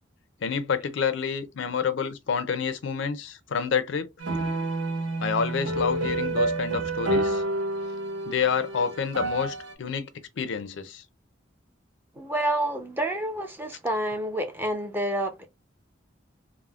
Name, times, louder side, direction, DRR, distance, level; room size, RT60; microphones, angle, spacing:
voice 1, 0.4-4.1 5.2-7.4 8.3-10.1 10.4-11.0, left 6 dB, 70° left, 0.4 m, -28 dB
sound 1, 4.2-9.7, right 2 dB, 70° right, 0.7 m, -29 dB
voice 2, 12.2-15.5, right 1 dB, 10° right, 0.4 m, -28 dB
3.4 x 2.0 x 2.3 m
head